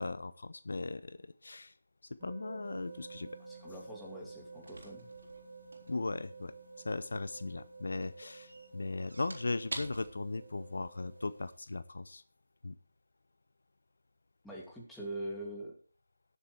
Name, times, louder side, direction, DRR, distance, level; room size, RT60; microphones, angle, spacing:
voice 1, 0.0-1.7 2.2-3.3 5.9-6.5 6.8-12.2 12.6-12.8, left 3 dB, 70° left, 15 dB, 0.6 m, -38 dB
sound 1, 2.2-11.3, right 4 dB, 15° right, 2.5 m, -52 dB
sound 2, 2.6-11.6, right 2 dB, 80° right, 3.7 m, -51 dB
voice 2, 3.5-5.1 14.4-15.7, right 1 dB, 5° left, -4 dB, 2.5 m, -43 dB
19.5 x 7.4 x 3.3 m, 0.42 s
figure-of-eight pair, 160°, 0 cm